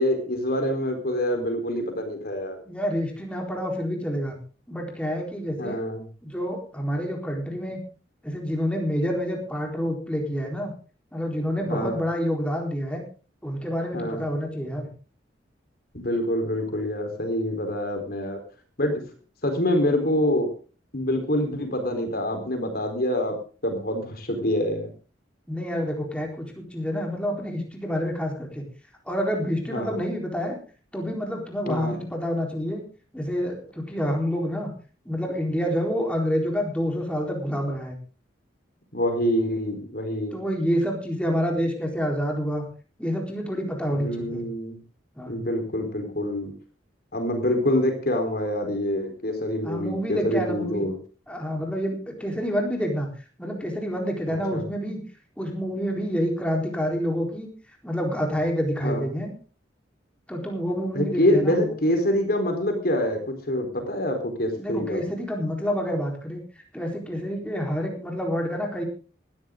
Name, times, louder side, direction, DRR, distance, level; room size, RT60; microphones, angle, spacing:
voice 1, 0.0-2.6 5.6-6.0 11.7-12.0 13.9-14.2 15.9-18.4 18.8-19.0 19.4-20.5 20.9-23.4 23.6-24.9 29.7-30.0 31.7-32.0 38.9-40.4 43.9-44.8 45.3-46.5 47.1-51.0 54.3-54.6 58.8-59.0 60.9-65.0, left 1 dB, 50° left, 5 dB, 4.2 m, -26 dB
voice 2, 2.7-4.4 4.7-5.8 6.2-7.8 8.2-10.7 11.1-13.0 13.4-14.9 25.5-28.6 29.1-30.6 30.9-32.8 33.1-34.7 35.1-38.0 40.3-42.6 43.0-44.4 45.2-45.4 49.6-50.8 51.3-53.1 53.4-55.0 55.4-57.5 57.8-59.3 60.3-61.7 64.6-66.4 66.7-68.8, equal, 5° left, 1 dB, 4.1 m, -28 dB
19.0 x 14.0 x 3.8 m, 0.36 s
head